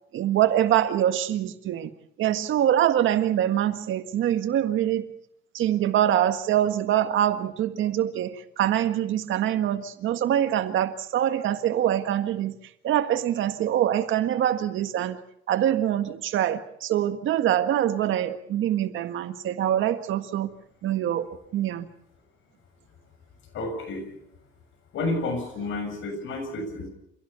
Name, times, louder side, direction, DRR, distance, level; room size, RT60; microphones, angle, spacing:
voice 1, 0.1-1.9 2.2-5.1 5.5-12.5 12.8-15.2 15.5-20.5 20.8-21.3 21.5-21.9, right 11 dB, 80° right, 9 dB, 1.7 m, -24 dB
voice 2, 23.5-24.1 24.9-26.9, left 2 dB, 80° left, 6 dB, 7.3 m, -30 dB
28.5 x 16.5 x 7.0 m, 0.75 s
cardioid pair, 90°, 20 cm